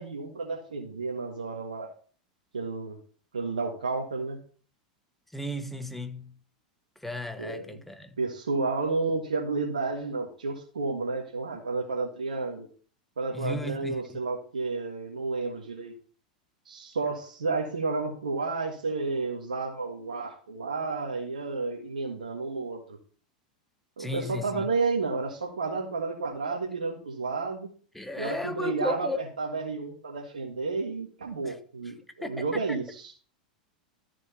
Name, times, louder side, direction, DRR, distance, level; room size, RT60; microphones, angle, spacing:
voice 1, 0.0-1.9 2.5-3.0 3.3-4.4 7.4-7.8 8.2-12.7 13.2-15.9 16.6-23.0 24.0-27.7 28.2-33.1, right 3 dB, 90° right, 1.6 m, -31 dB
voice 2, 5.3-6.4 7.0-8.1 13.3-14.2 24.0-24.7 27.9-29.2 31.4-31.6 32.2-32.6, left 1 dB, 5° left, 1.2 m, -34 dB
13.5 x 4.9 x 4.3 m
hypercardioid pair, 100°, 4 cm